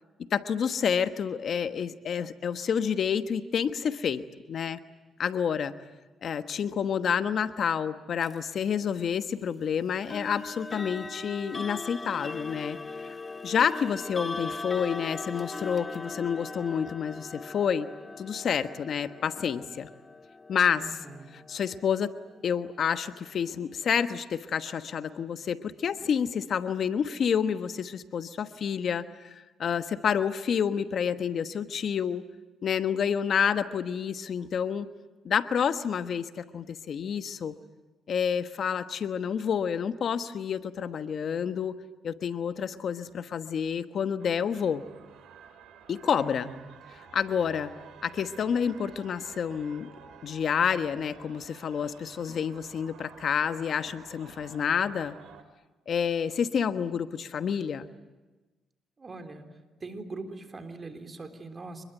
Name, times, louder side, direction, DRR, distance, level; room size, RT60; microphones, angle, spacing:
voice 1, 0.2-4.8 5.2-5.7 6.2-13.2 13.4-17.9 18.2-19.9 20.5-20.9 21.3-22.2 22.4-32.3 32.6-34.9 35.2-37.5 38.1-41.8 42.0-44.8 45.9-46.5 46.9-47.7 48.0-49.9 50.2-55.2 55.9-57.9, left 7 dB, 60° left, 10 dB, 1.2 m, -29 dB
sound 1, 8.2-8.4 10.1-22.9, left 3 dB, 25° left, 0.8 m, -40 dB
voice 2, 20.8-21.3 46.2-46.7 59.0-59.4 59.8-61.8, right 3 dB, 35° right, 6 dB, 3.7 m, -42 dB
sound 2, 44.2-55.4, right 7 dB, 80° right, 2.4 m, -51 dB
26.5 x 21.5 x 9.2 m, 1.2 s
cardioid pair, 75°, 0 cm